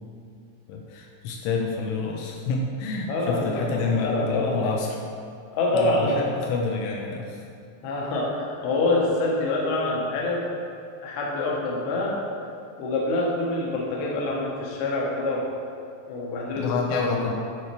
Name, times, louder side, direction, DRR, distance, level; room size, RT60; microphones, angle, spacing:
voice 1, 0.7-5.0 5.7-7.4 16.6-17.3, left 4 dB, 85° left, 0 dB, 3.1 m, -28 dB
voice 2, 3.1-4.7 5.5-6.2 7.8-10.4 11.0-12.2 12.8-15.5 16.1-17.3, left 2 dB, 65° left, -3 dB, 2.8 m, -26 dB
10.0 x 4.9 x 4.7 m, 2.4 s
omnidirectional pair, 5.7 m